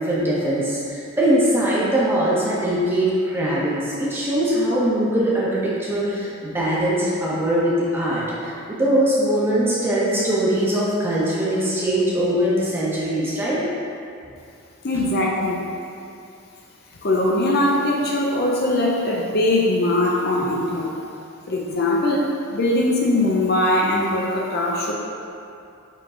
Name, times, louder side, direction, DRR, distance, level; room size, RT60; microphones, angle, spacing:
voice 1, 0.0-13.6, right 1 dB, 10° right, -8 dB, 1.2 m, -21 dB
voice 2, 14.8-15.6 17.0-21.0 21.5-24.9, left 1 dB, 45° left, -2 dB, 0.6 m, -21 dB
7.4 x 3.8 x 3.8 m, 2.6 s
head